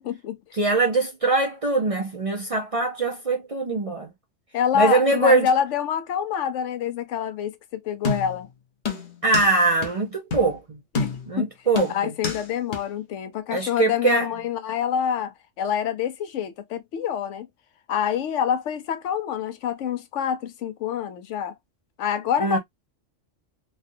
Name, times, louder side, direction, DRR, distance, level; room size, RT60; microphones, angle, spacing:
voice 1, 0.0-0.4 4.5-8.5 11.0-11.5 11.9-17.5 17.9-21.5 22.0-22.6, left 8 dB, 80° left, 0.9 m, -26 dB
voice 2, 0.6-4.1 4.7-5.5 9.2-10.8 11.3-11.9 13.5-14.3 22.4-22.6, right 3 dB, 40° right, 0.5 m, -22 dB
sound 1, 8.0-8.5 8.9-9.5 9.8-9.9 10.3-10.5 10.9-11.4 11.8-12.4 12.7-12.8, left 4 dB, 45° left, 0.8 m, -28 dB
3.3 x 2.3 x 2.5 m
omnidirectional pair, 1.3 m